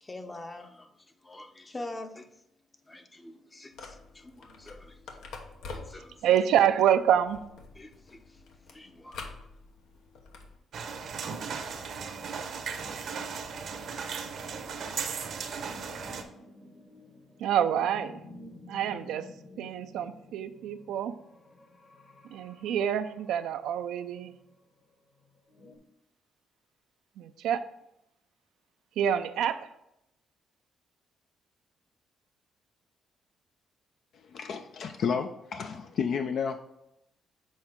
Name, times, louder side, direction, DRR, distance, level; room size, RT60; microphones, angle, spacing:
voice 1, 0.0-2.3 2.9-5.2 5.7-6.3 7.8-9.4, left 2 dB, 20° left, 0.6 m, -45 dB
sound 1, 3.7-10.6, left 4 dB, 85° left, 0.8 m, -47 dB
voice 2, 6.2-7.4 17.4-18.2 18.7-19.3 19.6-21.2 22.3-24.3 27.2-27.7 29.0-29.7, right 9 dB, 85° right, 0.3 m, -27 dB
sound 2, 10.7-16.2, right 6 dB, 65° right, 0.7 m, -36 dB
sound 3, 15.6-25.8, left 2 dB, 40° left, 1.2 m, -52 dB
voice 3, 34.1-36.6, left 6 dB, 65° left, 0.4 m, -31 dB
6.3 x 4.3 x 3.6 m
cardioid pair, 90°, 0 cm